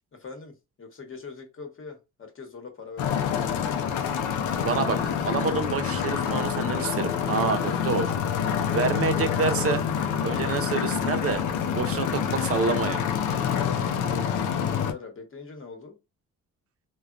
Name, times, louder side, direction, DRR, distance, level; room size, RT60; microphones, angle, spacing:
voice 1, 0.1-3.8 13.4-16.0, left 4 dB, 45° left, 1.1 m, -43 dB
sound 1, 3.0-14.9, left 8 dB, 85° left, 0.5 m, -27 dB
voice 2, 4.6-8.1 8.7-9.8 10.2-11.4 11.7-13.0, right 5 dB, 50° right, 0.6 m, -27 dB
3.4 x 2.2 x 2.4 m
cardioid pair, 90°, 30 cm